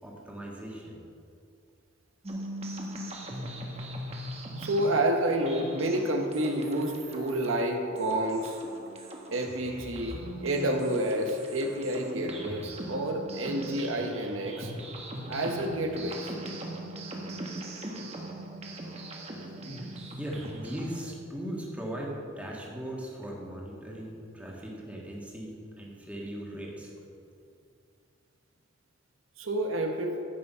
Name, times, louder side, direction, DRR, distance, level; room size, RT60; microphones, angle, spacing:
voice 1, 0.0-1.0 19.5-19.9 20.2-26.9, right 1 dB, 5° right, -3 dB, 1.9 m, -39 dB
sound 1, 2.2-21.1, right 1 dB, 30° right, 1.4 m, -40 dB
voice 2, 4.6-8.6 9.3-14.7 15.3-16.3 29.4-30.1, right 1 dB, 80° right, 3 dB, 1.2 m, -29 dB
11.5 x 8.3 x 5.6 m, 2.5 s
head